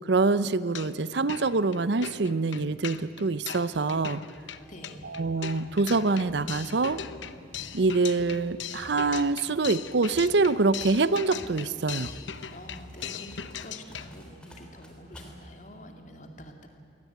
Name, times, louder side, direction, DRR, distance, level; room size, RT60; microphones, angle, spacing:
voice 1, 0.0-4.2 5.1-7.0 7.7-12.1, right 3 dB, 65° right, 16 dB, 0.6 m, -25 dB
sound 1, 0.6-1.0 1.3-14.1, left 8 dB, 80° left, 0.9 m, -40 dB
sound 2, 4.2-15.3, equal, 5° left, 3.3 m, -51 dB
voice 2, 4.7-5.2 12.5-16.7, equal, 40° left, 4 dB, 2.4 m, -47 dB
sound 3, 5.5-9.3, equal, 35° right, 4.6 m, -51 dB
22.0 x 18.0 x 9.3 m, 2.6 s
head